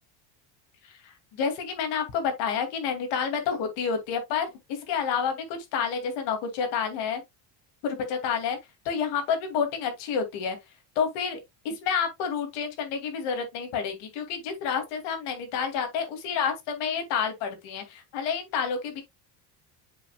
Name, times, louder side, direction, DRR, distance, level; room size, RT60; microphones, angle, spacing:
voice 1, 0.9-7.2 7.8-8.6 8.8-10.6 11.0-11.4 11.6-19.0, left 6 dB, 65° left, 2.4 m, -29 dB
7.4 x 5.7 x 2.3 m
cardioid pair, 165°, 46 cm